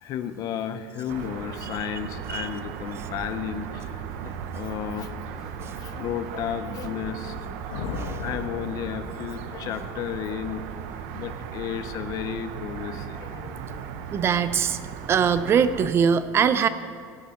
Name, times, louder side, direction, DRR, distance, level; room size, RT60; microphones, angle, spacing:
voice 1, 0.0-7.4 7.9-14.1, left 9 dB, 50° left, 10 dB, 0.8 m, -34 dB
sound 1, 1.1-15.9, right 7 dB, 75° right, 0.9 m, -37 dB
sound 2, 7.7-9.7, left 3 dB, 90° left, 1.3 m, -35 dB
voice 2, 14.1-14.8 15.1-16.7, right 7 dB, 30° right, 13 dB, 0.5 m, -22 dB
16.5 x 9.2 x 4.4 m, 2.1 s
cardioid pair, 140°, 8 cm